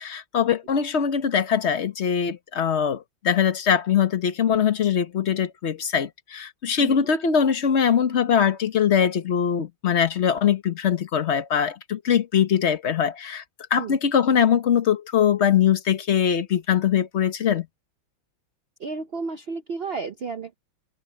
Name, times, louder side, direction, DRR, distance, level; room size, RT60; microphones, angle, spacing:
voice 1, 0.0-13.4 13.7-17.7, left 8 dB, 40° left, 1.1 m, -22 dB
voice 2, 18.8-20.6, right 4 dB, 85° right, 0.5 m, -32 dB
omnidirectional pair, 2.2 m